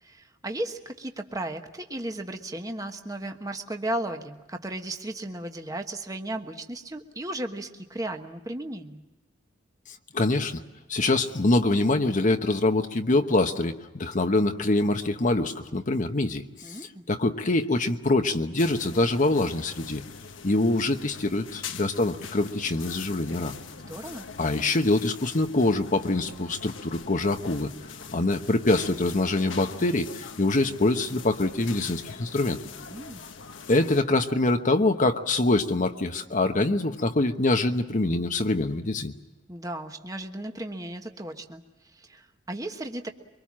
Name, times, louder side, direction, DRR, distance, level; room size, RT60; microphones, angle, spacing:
voice 1, 0.0-9.0 16.6-17.0 23.8-24.3 32.8-33.3 39.5-41.6 41.9-43.1, right 1 dB, 20° right, 5 dB, 1.4 m, -35 dB
voice 2, 10.1-10.6 10.9-16.8 17.1-20.0 20.4-23.5 24.4-27.7 28.1-32.6 33.7-39.1, left 2 dB, 40° left, 6 dB, 1.1 m, -24 dB
sound 1, 18.6-34.0, left 6 dB, 75° left, 1.3 m, -43 dB
24.5 x 24.0 x 7.5 m, 1.2 s
head